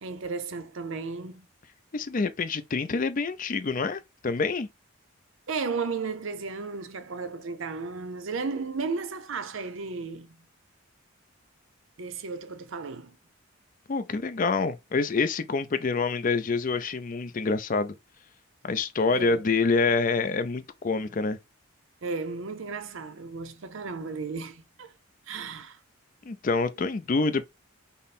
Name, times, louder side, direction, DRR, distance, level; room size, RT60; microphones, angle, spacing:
voice 1, 0.0-1.5 5.5-10.4 12.0-13.2 19.1-19.4 22.0-24.9 25.3-25.8, right 4 dB, 60° right, 0.6 m, -34 dB
voice 2, 1.9-4.7 13.9-17.9 18.6-21.4 26.3-27.4, left 4 dB, 40° left, 0.4 m, -26 dB
5.4 x 2.1 x 4.2 m
head